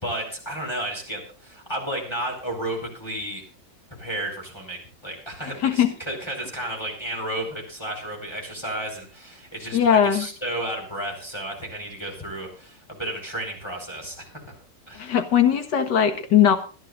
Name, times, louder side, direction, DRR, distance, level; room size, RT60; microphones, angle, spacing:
voice 1, 0.0-3.4 4.0-14.5 14.9-15.1, right 1 dB, 15° left, 0 dB, 4.9 m, -32 dB
voice 2, 9.7-10.3 15.0-16.6, left 9 dB, 70° left, 7 dB, 2.1 m, -19 dB
29.0 x 10.5 x 2.6 m, 0.37 s
omnidirectional pair, 2.0 m